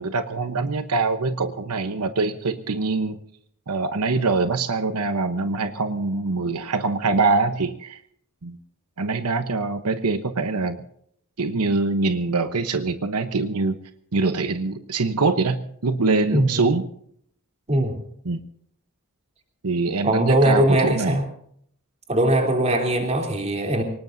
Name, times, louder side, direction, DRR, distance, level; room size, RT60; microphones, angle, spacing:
voice 1, 0.0-3.2 3.7-8.0 8.4-8.6 9.0-10.8 11.4-13.8 14.1-16.8 18.3-18.4 19.6-21.2, right 3 dB, 85° right, 9 dB, 1.0 m, -24 dB
voice 2, 16.3-16.6 17.7-17.9 20.0-21.2 22.1-23.8, right 1 dB, 30° right, 3 dB, 3.3 m, -20 dB
23.5 x 19.5 x 2.7 m, 0.66 s
head